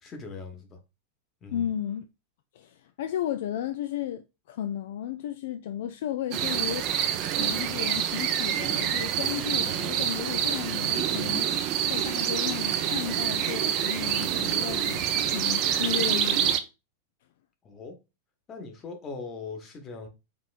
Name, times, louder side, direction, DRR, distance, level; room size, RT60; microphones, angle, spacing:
voice 1, 0.0-0.8 1.4-1.7 17.6-18.0 18.5-20.1, left 4 dB, 30° left, 1.2 m, -40 dB
voice 2, 1.5-2.1 2.5-11.5 11.9-16.6, left 10 dB, 55° left, 0.3 m, -34 dB
sound 1, 6.3-16.6, right 10 dB, 40° right, 0.5 m, -27 dB
5.2 x 3.0 x 2.5 m
figure-of-eight pair, 90°, 0 cm